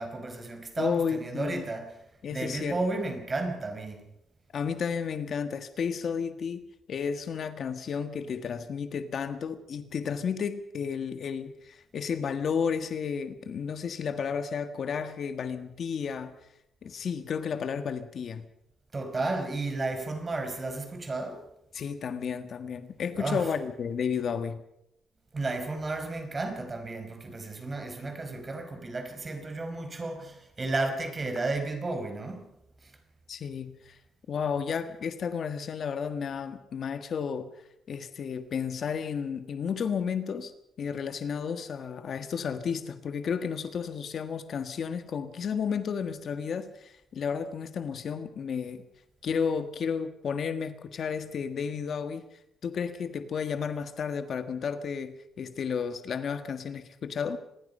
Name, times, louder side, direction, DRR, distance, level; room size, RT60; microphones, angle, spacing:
voice 1, 0.0-2.0 2.3-4.0 18.9-21.5 23.2-23.5 25.3-32.5 32.8-32.9, right 2 dB, 25° right, 4.7 m, -33 dB
voice 2, 0.8-1.6 2.2-2.8 4.5-6.6 6.9-16.3 16.8-18.4 21.7-24.6 33.3-34.0 34.3-37.5 37.9-40.5 40.8-48.8 49.2-52.2 52.6-57.4, left 6 dB, 50° left, 1.6 m, -32 dB
26.0 x 21.5 x 5.5 m
cardioid pair, 135°, 0 cm